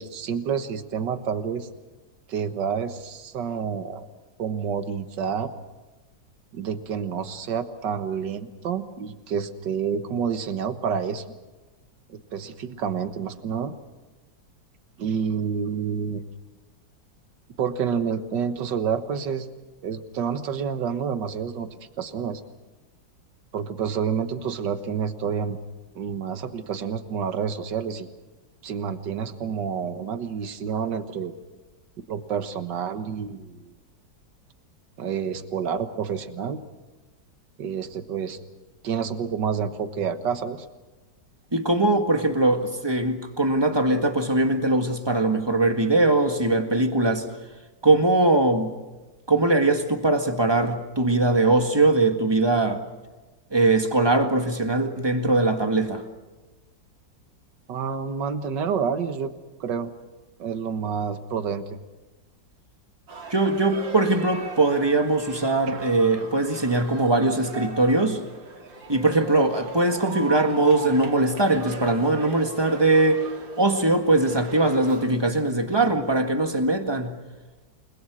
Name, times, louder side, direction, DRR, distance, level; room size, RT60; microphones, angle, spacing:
voice 1, 0.0-1.7 2.3-4.1 4.4-5.5 6.5-11.2 12.1-13.7 15.0-16.2 17.6-19.5 19.8-21.7 22.0-22.4 23.5-25.6 26.0-28.1 28.6-31.3 32.1-33.7 35.0-36.6 37.6-38.4 38.8-40.7 57.7-59.3 59.6-59.9 60.4-61.8 65.7-65.8, right 7 dB, 70° right, 1.9 m, -28 dB
voice 2, 41.5-47.2 47.8-48.7 49.3-52.8 53.5-56.0 63.3-68.2 68.9-73.2 73.6-77.2, right 2 dB, 15° right, 1.7 m, -21 dB
sound 1, 63.1-75.1, right 3 dB, 85° right, 3.1 m, -39 dB
29.0 x 21.0 x 6.3 m
omnidirectional pair, 2.0 m